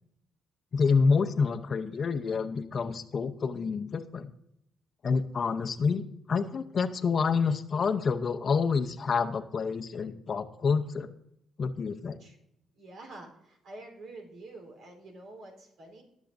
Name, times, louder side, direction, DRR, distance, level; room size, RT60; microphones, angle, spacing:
voice 1, 0.7-4.3 5.0-11.1 11.6-12.2, left 5 dB, 45° left, 8 dB, 0.7 m, -28 dB
voice 2, 12.7-16.0, right 2 dB, 70° right, 2 dB, 3.7 m, -47 dB
20.0 x 7.3 x 2.6 m, 0.80 s
cardioid pair, 90°, 0 cm